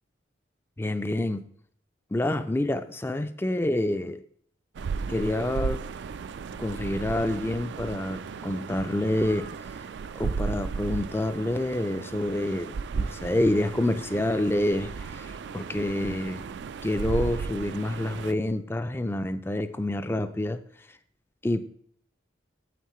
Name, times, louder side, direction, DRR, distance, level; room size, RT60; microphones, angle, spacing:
voice 1, 0.8-1.5 2.1-4.2 5.1-5.8 6.6-9.5 10.2-16.4 16.8-20.6 21.4-21.7, left 1 dB, 10° left, 0.3 m, -28 dB
sound 1, 4.7-18.3, right 5 dB, 65° right, 0.3 m, -35 dB
9.2 x 7.3 x 3.1 m
head